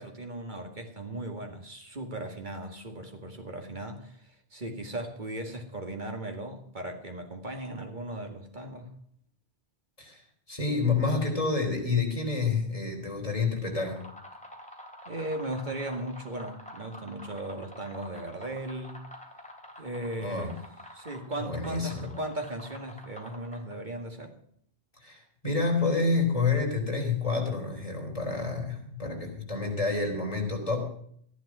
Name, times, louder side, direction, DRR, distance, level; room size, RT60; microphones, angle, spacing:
voice 1, 0.0-8.9 15.1-19.0 19.8-20.6 20.9-24.4, right 1 dB, 45° right, 4 dB, 2.2 m, -37 dB
voice 2, 10.5-14.0 20.2-20.5 21.4-22.1 25.0-30.9, left 4 dB, 30° left, 0 dB, 3.9 m, -28 dB
sound 1, 13.6-23.9, left 1 dB, 5° left, 2.6 m, -48 dB
13.0 x 11.5 x 6.1 m, 0.64 s
omnidirectional pair, 1.2 m